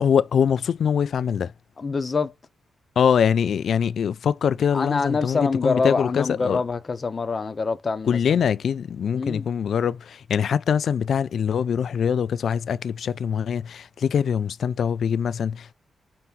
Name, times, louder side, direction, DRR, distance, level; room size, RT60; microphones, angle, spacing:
voice 1, 0.0-1.5 3.0-6.6 8.1-15.7, left 7 dB, 70° left, 0.3 m, -23 dB
voice 2, 1.8-2.3 4.7-8.4 9.2-9.5, left 4 dB, 35° left, 0.7 m, -25 dB
4.3 x 2.8 x 3.7 m
cardioid pair, 105°, 0 cm